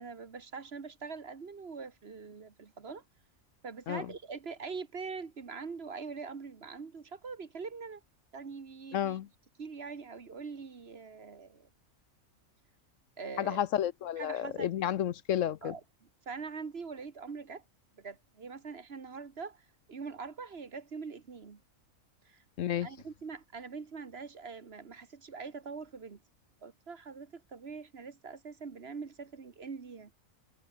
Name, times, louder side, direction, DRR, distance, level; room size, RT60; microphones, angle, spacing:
voice 1, 0.0-3.0 3.6-8.0 8.3-9.2 9.6-11.7 13.2-13.6 14.2-14.7 15.6-17.6 18.0-21.6 22.2-22.4 22.8-26.2 26.6-30.1, right 5 dB, 50° right, 1.7 m, -43 dB
voice 2, 8.9-9.3 13.4-15.7 22.6-22.9, left 10 dB, 70° left, 1.0 m, -31 dB
omnidirectional pair, 1.4 m